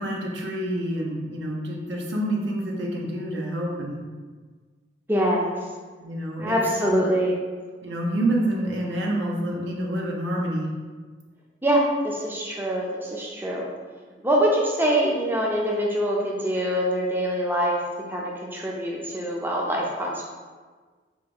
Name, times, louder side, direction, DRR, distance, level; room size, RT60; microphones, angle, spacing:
voice 1, 0.0-4.0 6.0-7.0 7.8-10.7, right 1 dB, 85° right, -2 dB, 0.6 m, -28 dB
voice 2, 5.1-5.5 6.4-7.3 11.6-13.7 14.2-17.8 18.1-20.2, equal, 10° right, -2 dB, 0.4 m, -24 dB
3.4 x 2.5 x 3.5 m, 1.4 s
head